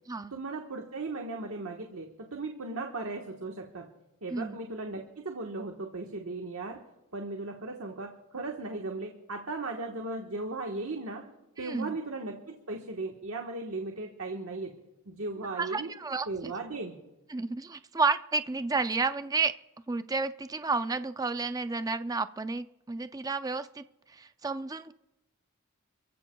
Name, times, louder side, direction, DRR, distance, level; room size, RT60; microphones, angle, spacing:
voice 1, 0.3-3.9 4.2-6.8 7.1-11.2 11.6-14.7 15.0-15.9 16.3-17.0, right 3 dB, 80° right, 2 dB, 1.4 m, -37 dB
voice 2, 11.6-12.0 15.6-16.5 17.3-19.5 19.9-24.9, right 4 dB, 15° right, 10 dB, 0.4 m, -31 dB
28.5 x 15.5 x 2.3 m, 0.98 s
head